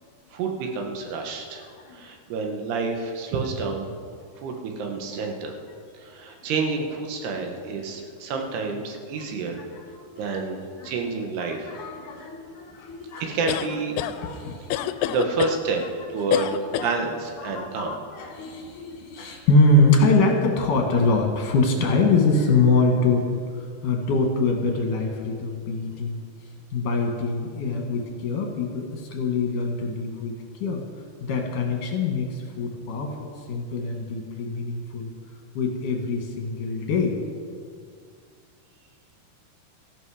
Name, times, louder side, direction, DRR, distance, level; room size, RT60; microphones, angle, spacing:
voice 1, 0.3-1.6 1.9-3.9 4.4-5.6 6.0-9.7 10.2-11.7 13.2-13.9 15.0-15.8 16.1-18.0, right 4 dB, 80° right, 3 dB, 3.5 m, -29 dB
voice 2, 1.5-2.1 4.4-4.5 6.3-6.4 7.7-7.9 8.4-8.5 9.6-10.4 10.8-10.9 11.4-13.3 14.0-15.2 16.4-16.5 17.4-26.2 26.7-30.3 30.6-30.8 31.2-35.1 35.5-37.2, left 3 dB, 60° left, 1 dB, 2.8 m, -24 dB
sound 1, 13.5-14.2 14.7-15.6 16.3-17.0, left 12 dB, 90° left, 2.7 m, -26 dB
17.0 x 14.0 x 4.9 m, 2.1 s
omnidirectional pair, 4.7 m